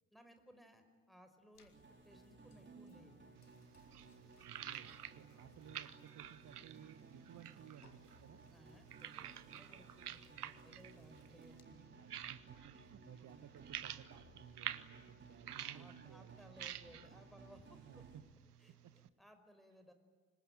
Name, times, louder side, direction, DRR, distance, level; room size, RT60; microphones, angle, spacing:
voice 1, 0.1-1.7 2.0-3.2 8.5-11.9 15.5-18.0 18.6-19.9, equal, ahead, 6 dB, 5.1 m, -62 dB
sound 1, 1.5-11.6, left 4 dB, 85° left, 1.9 m, -71 dB
sound 2, 1.7-18.2, right 4 dB, 25° right, 4.6 m, -60 dB
sound 3, 3.4-19.1, right 10 dB, 85° right, 0.9 m, -51 dB
voice 2, 4.5-8.4 12.0-16.6 17.8-18.2 18.8-18.9, right 10 dB, 45° right, 12 dB, 1.4 m, -58 dB
26.0 x 22.5 x 9.1 m, 1.5 s
figure-of-eight pair, 50°, 45 cm